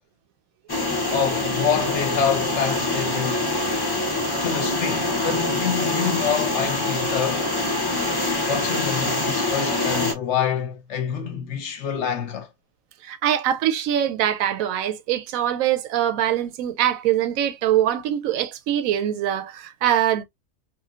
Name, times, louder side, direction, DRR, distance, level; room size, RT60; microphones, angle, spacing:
sound 1, 0.7-10.1, left 2 dB, 30° left, 0.4 m, -25 dB
voice 1, 1.1-3.5 4.4-7.5 8.5-12.5, left 7 dB, 60° left, 0.9 m, -26 dB
voice 2, 13.0-20.2, right 11 dB, 70° right, 1.0 m, -23 dB
3.0 x 2.7 x 2.4 m
omnidirectional pair, 1.5 m